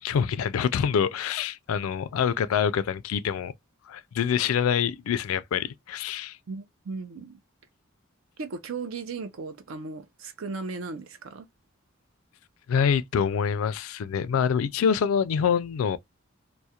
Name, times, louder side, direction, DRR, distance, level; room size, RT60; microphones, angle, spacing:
voice 1, 0.0-3.5 3.9-6.4 12.7-16.0, left 7 dB, 85° left, 0.3 m, -26 dB
voice 2, 6.5-7.4 8.4-11.5, right 4 dB, 70° right, 0.5 m, -36 dB
2.3 x 2.1 x 2.7 m
head